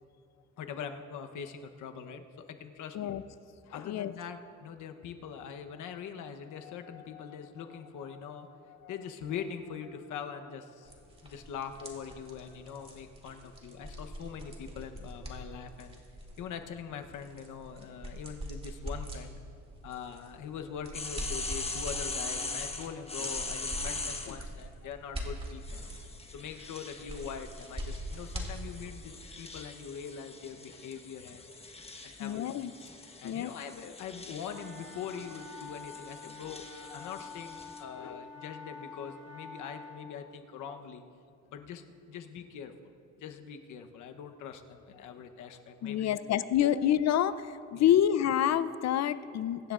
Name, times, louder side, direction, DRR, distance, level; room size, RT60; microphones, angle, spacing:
voice 1, 0.6-3.2 3.7-11.0 11.2-16.0 16.3-19.4 19.8-25.8 26.2-32.7 33.2-41.1 41.5-42.9 43.2-46.2 46.6-46.9 47.7-47.9, left 7 dB, 80° left, 6 dB, 1.0 m, -43 dB
voice 2, 3.7-4.1 32.2-32.7 33.2-33.5 38.0-38.2 45.8-47.5 47.7-49.7, left 10 dB, 60° left, 14 dB, 0.6 m, -27 dB
sound 1, 10.8-29.0, equal, 20° right, 2.4 m, -43 dB
sound 2, 20.9-24.4 25.6-37.8, left 3 dB, 20° left, 1.2 m, -42 dB
sound 3, 34.4-40.0, left 4 dB, 55° right, 3.3 m, -47 dB
24.0 x 10.5 x 2.5 m, 2.5 s
cardioid pair, 90°, 30 cm